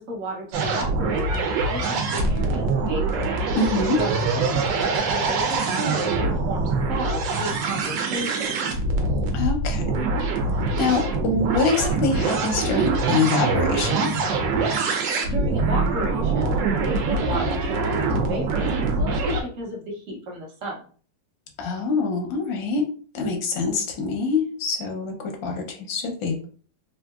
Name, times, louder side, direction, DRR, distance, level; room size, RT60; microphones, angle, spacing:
voice 1, 0.0-3.4 4.0-8.6 15.2-20.8, equal, 55° right, -2 dB, 0.9 m, -33 dB
sound 1, 0.5-19.4, right 3 dB, 80° right, 1.3 m, -24 dB
voice 2, 3.5-4.0 9.3-10.1 10.8-14.1 21.6-22.8 23.1-26.5, left 4 dB, 85° left, 3 dB, 1.4 m, -25 dB
3.7 x 2.6 x 2.3 m, 0.43 s
omnidirectional pair, 2.0 m